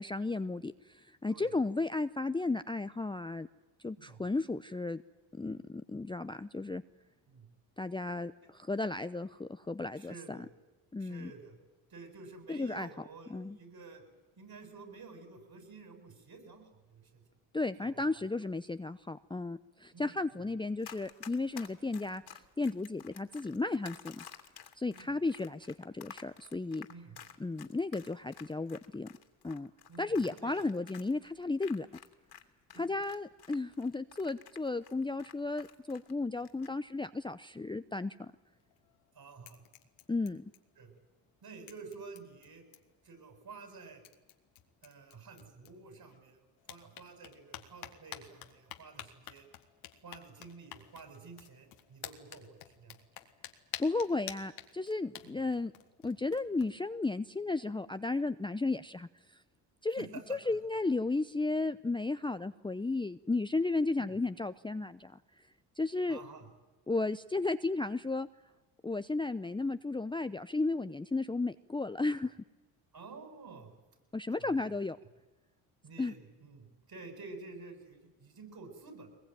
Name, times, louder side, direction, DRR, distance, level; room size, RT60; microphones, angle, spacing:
voice 1, 0.0-3.5 3.8-5.0 5.3-6.8 7.8-10.4 10.9-11.3 12.5-12.9 13.3-13.6 17.5-22.2 22.6-24.3 24.8-26.9 27.4-29.1 29.4-29.7 30.0-31.9 32.7-38.3 40.1-40.4 53.8-55.7 56.0-59.4 59.8-65.2 65.8-66.2 66.9-68.3 68.8-72.4 74.1-75.0 76.0-76.1, left 3 dB, 10° left, 11 dB, 0.7 m, -34 dB
voice 2, 9.9-10.5 11.0-11.6 11.9-14.0 14.4-17.2 17.8-18.2 19.9-20.2 24.9-25.1 26.9-27.3 29.9-30.6 32.7-32.9 39.1-39.6 40.8-40.9 41.4-42.6 43.0-44.0 44.8-49.5 50.0-53.0 55.2-55.4 60.0-60.2 64.0-64.2 66.1-66.5 72.9-73.7 74.4-74.7 75.8-79.1, right 4 dB, 50° right, 6 dB, 7.8 m, -51 dB
Run, 20.8-32.4 32.7-36.1 36.4-36.7, left 8 dB, 55° left, 2.8 m, -51 dB
sound 1, 38.5-39.1 39.4-41.0 41.2-41.3 41.7-43.0 43.7-43.8 44.0-46.2 46.6-56.7, left 12 dB, 85° left, 2.1 m, -50 dB
22.5 x 21.5 x 9.3 m, 1.2 s
supercardioid pair, 65°, 47 cm